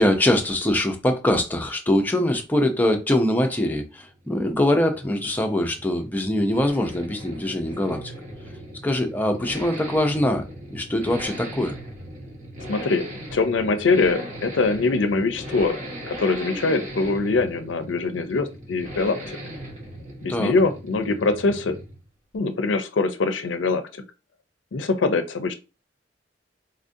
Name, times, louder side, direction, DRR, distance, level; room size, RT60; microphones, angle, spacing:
voice 1, 0.0-8.1 8.8-10.4 10.7-11.7 20.3-20.5, left 1 dB, 10° left, 0.6 m, -23 dB
Accelerating revving vroom, 3.9-22.1 22.3-22.4, equal, 40° right, 1.1 m, -38 dB
voice 2, 12.7-15.8 16.2-19.4 20.2-21.8 22.3-24.0 24.7-25.5, left 3 dB, 85° left, 0.5 m, -23 dB
4.2 x 2.5 x 2.6 m
head